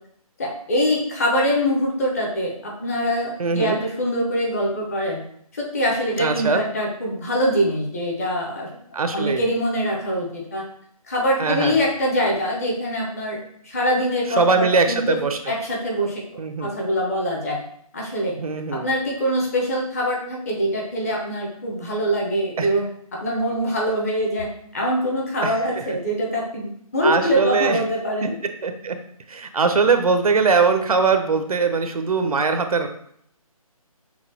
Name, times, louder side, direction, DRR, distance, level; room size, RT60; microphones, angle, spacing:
voice 1, 0.4-5.2 5.5-8.7 9.1-10.6 11.1-13.4 13.6-15.2 15.5-16.2 16.6-17.6 17.9-18.3 18.7-24.5 24.7-28.3, equal, 25° left, -2 dB, 0.7 m, -24 dB
voice 2, 3.4-3.8 6.2-6.6 8.9-9.5 11.4-11.8 14.4-15.5 16.4-16.7 18.4-18.9 22.6-22.7 25.4-25.8 27.0-27.8 28.2-28.3 28.6-29.0 29.3-32.9, right 4 dB, 75° right, 8 dB, 0.5 m, -21 dB
5.9 x 2.3 x 2.7 m, 0.66 s
figure-of-eight pair, 160°, 19 cm